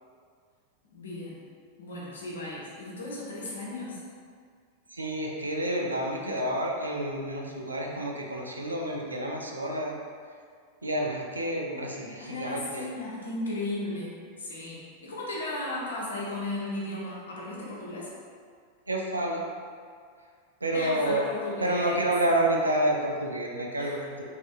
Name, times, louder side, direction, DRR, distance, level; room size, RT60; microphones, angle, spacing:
voice 1, 0.9-1.4 1.8-4.0 12.2-18.1 20.7-22.1 23.8-24.0, left 2 dB, 65° left, -4 dB, 0.6 m, -35 dB
voice 2, 4.9-10.0 10.8-12.9 18.9-19.4 20.6-21.3 21.6-24.2, right 1 dB, 80° right, -1 dB, 0.3 m, -29 dB
2.7 x 2.5 x 2.2 m, 2.1 s
figure-of-eight pair, 90°, 0 cm